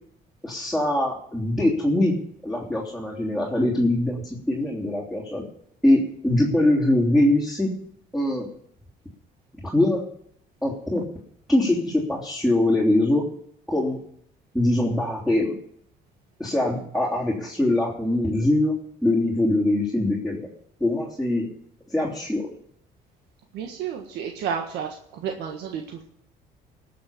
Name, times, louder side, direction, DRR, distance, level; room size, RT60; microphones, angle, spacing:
voice 1, 0.4-2.1 2.4-5.4 5.8-7.7 8.1-8.5 9.6-10.0 10.6-11.0 11.5-13.2 13.7-14.0 14.5-15.6 16.4-18.8 19.0-20.4 20.8-21.5 21.9-22.5, left 1 dB, ahead, -4 dB, 3.2 m, -22 dB
voice 2, 23.5-26.0, right 7 dB, 85° right, 2 dB, 1.6 m, -31 dB
19.0 x 6.8 x 7.1 m, 0.68 s
cardioid pair, 110°, 17 cm